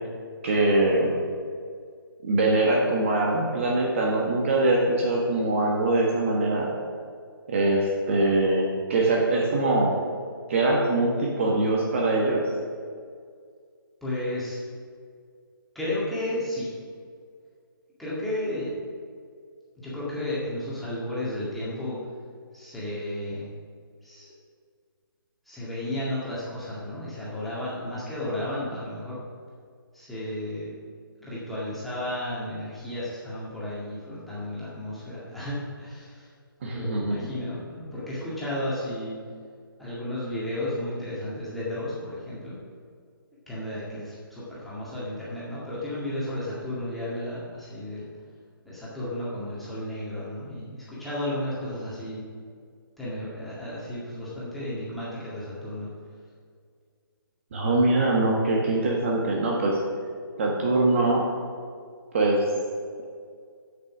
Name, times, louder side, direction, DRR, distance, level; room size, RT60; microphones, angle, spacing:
voice 1, 0.4-1.2 2.2-6.7 7.5-10.0 10.5-12.5 36.6-37.3 57.5-59.8 60.4-61.2 62.1-62.5, right 2 dB, 35° right, -1 dB, 1.3 m, -23 dB
voice 2, 14.0-14.6 15.7-16.7 18.0-18.8 19.8-22.0 22.5-23.5 24.0-24.3 25.5-29.2 29.9-30.7 31.2-36.3 36.7-39.2 39.8-42.6 43.5-48.1 48.6-52.2 53.0-55.9, left 1 dB, ahead, -10 dB, 2.0 m, -33 dB
9.5 x 6.8 x 6.1 m, 2.1 s
hypercardioid pair, 165°, 12 cm